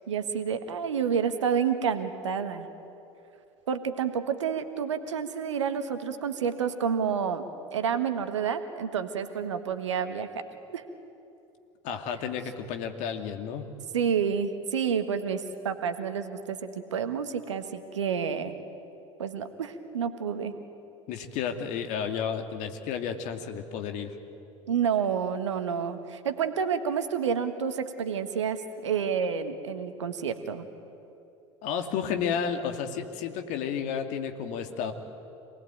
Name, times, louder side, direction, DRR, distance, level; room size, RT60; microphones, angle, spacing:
voice 1, 0.1-2.7 3.7-7.4 7.7-10.4 10.7-10.8 13.9-18.6 19.2-20.5 24.7-30.6, right 7 dB, 75° right, 9 dB, 1.6 m, -29 dB
voice 2, 11.8-13.7 21.1-24.1 31.6-34.9, left 7 dB, 50° left, 6 dB, 2.4 m, -32 dB
27.0 x 19.5 x 9.1 m, 2.8 s
figure-of-eight pair, 70°, 16 cm